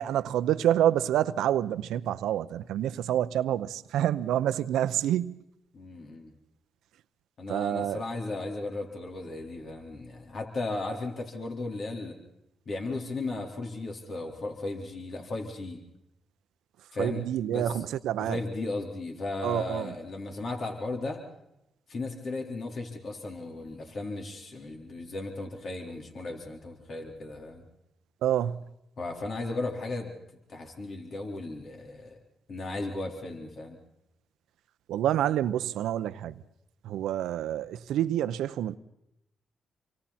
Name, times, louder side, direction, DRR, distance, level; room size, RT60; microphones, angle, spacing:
voice 1, 0.0-5.4 7.5-8.0 17.0-18.4 19.4-19.9 28.2-28.6 34.9-36.3 36.8-38.8, right 11 dB, 85° right, 0.7 m, -27 dB
voice 2, 5.7-6.3 7.4-12.2 12.7-15.8 16.9-17.8 18.2-21.2 21.9-27.6 29.0-30.1 30.5-32.2 32.5-33.8, left 2 dB, 60° left, 4.1 m, -36 dB
28.0 x 24.5 x 4.3 m
supercardioid pair, 60°, 0 cm